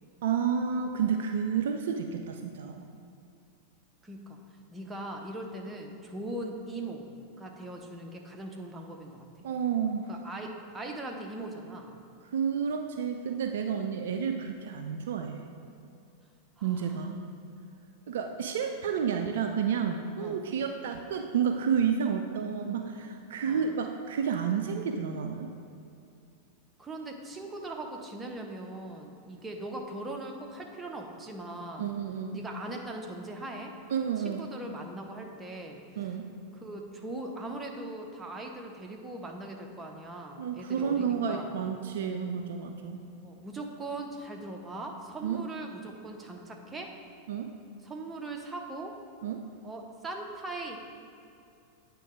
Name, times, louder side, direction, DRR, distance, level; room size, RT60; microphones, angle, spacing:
voice 1, 0.2-2.8 9.4-10.1 12.3-15.5 16.6-17.3 18.1-25.5 31.8-32.4 33.9-34.5 36.0-36.3 40.4-43.0 45.2-45.4 47.3-47.5 49.2-49.4, right 7 dB, 60° right, 5 dB, 0.3 m, -30 dB
voice 2, 4.0-4.4 4.7-7.1 7.4-9.3 10.1-11.9 16.6-17.0 20.2-20.4 23.4-23.7 26.8-31.9 32.3-33.8 34.2-36.1 36.5-41.5 43.2-47.0 47.8-49.0 49.6-50.8, right 2 dB, 15° right, 1 dB, 0.7 m, -40 dB
8.3 x 3.0 x 4.9 m, 2.6 s
figure-of-eight pair, 90°, 0 cm